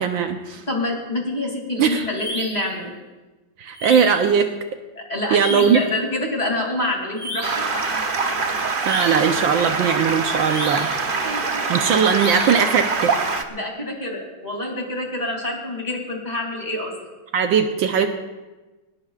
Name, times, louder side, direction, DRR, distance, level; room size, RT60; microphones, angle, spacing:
voice 1, 0.0-0.6 1.8-2.1 3.6-4.5 5.3-5.8 8.9-10.9 11.7-13.4 17.3-18.1, right 7 dB, 70° right, 5 dB, 1.5 m, -19 dB
voice 2, 0.7-2.9 4.9-8.1 11.1-12.0 13.5-16.9, left 2 dB, 20° left, 0 dB, 2.8 m, -27 dB
sound 1, 2.1-2.7 3.7-4.3 5.3-5.9 7.1-7.7 8.8-9.4 10.5-11.0 12.1-12.7, equal, 25° right, 6.2 m, -32 dB
Stream, 7.4-13.4, right 4 dB, 50° right, 0.6 m, -24 dB
20.5 x 20.0 x 2.4 m, 1.2 s
omnidirectional pair, 2.3 m